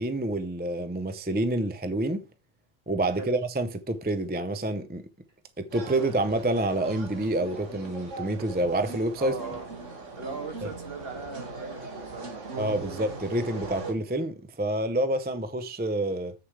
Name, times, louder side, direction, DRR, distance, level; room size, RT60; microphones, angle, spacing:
voice 1, 0.0-2.2 2.9-5.0 5.6-9.3 12.6-16.3, right 1 dB, 10° right, 0.5 m, -28 dB
sound 1, 5.7-13.9, right 3 dB, 85° right, 2.4 m, -40 dB
voice 2, 9.2-9.7 10.2-12.6, right 3 dB, 55° right, 1.9 m, -39 dB
7.9 x 6.8 x 4.7 m
omnidirectional pair, 1.2 m